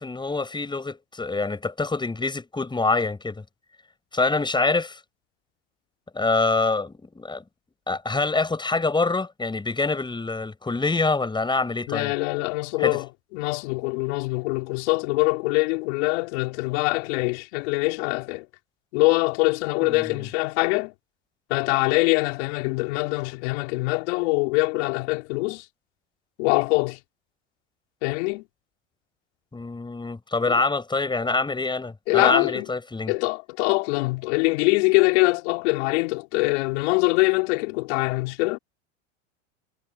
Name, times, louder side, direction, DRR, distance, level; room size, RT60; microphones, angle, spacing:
voice 1, 0.0-3.4 4.1-5.0 6.1-7.4 7.9-12.1 12.8-13.0 19.8-20.1 29.5-33.1, left 3 dB, 10° left, 6.2 m, -25 dB
voice 2, 11.9-13.1 13.3-18.5 18.9-20.9 21.5-25.6 26.4-27.0 28.0-28.4 30.5-30.6 32.1-32.7 33.1-38.6, left 26 dB, 65° left, 4.3 m, -23 dB
hypercardioid pair, 95°, 36 cm